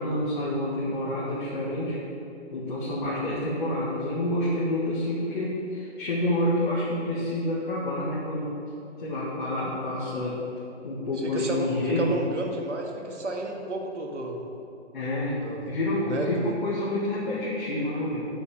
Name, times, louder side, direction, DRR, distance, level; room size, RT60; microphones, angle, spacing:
voice 1, 0.0-2.0 2.5-8.5 9.0-10.4 10.8-12.2 14.9-15.4 15.7-18.3, left 1 dB, 45° left, -8 dB, 1.9 m, -28 dB
voice 2, 11.2-11.7 12.0-14.4 15.4-15.6 16.1-16.5, right 2 dB, 80° right, 1 dB, 1.7 m, -32 dB
7.1 x 6.9 x 7.0 m, 2.8 s
hypercardioid pair, 160°, 35 cm